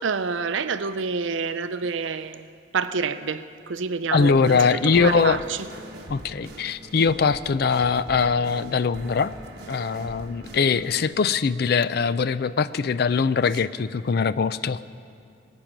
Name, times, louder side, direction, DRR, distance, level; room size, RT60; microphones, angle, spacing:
voice 1, 0.0-2.5 2.7-5.7, right 5 dB, 75° right, 0.6 m, -28 dB
voice 2, 4.1-5.4 6.1-9.3 9.7-14.8, left 5 dB, 55° left, 0.4 m, -22 dB
sound 1, 4.2-11.0, right 1 dB, 55° right, 1.5 m, -42 dB
23.5 x 8.8 x 6.1 m
head